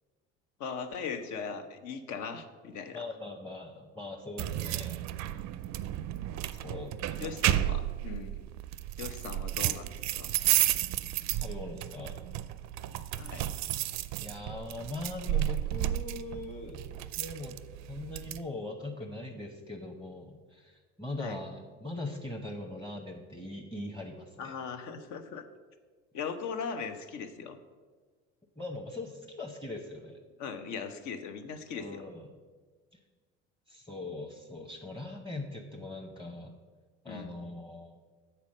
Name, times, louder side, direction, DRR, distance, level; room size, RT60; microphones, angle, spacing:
voice 1, 0.6-3.1 7.2-8.4 9.0-10.3 13.1-13.4 21.2-21.4 24.4-25.5 26.1-27.6 30.4-32.0 37.1-37.4, left 6 dB, 65° left, 8 dB, 0.8 m, -39 dB
voice 2, 2.9-4.9 6.4-7.5 11.4-12.2 14.2-16.8 17.2-17.6 17.9-24.5 28.6-30.2 31.7-32.3 33.7-36.5 37.0-37.9, left 2 dB, 10° left, 1 dB, 0.8 m, -41 dB
sound 1, 4.4-18.4, right 13 dB, 55° right, 0.4 m, -32 dB
6.9 x 4.3 x 6.4 m, 1.4 s
supercardioid pair, 80°, 32 cm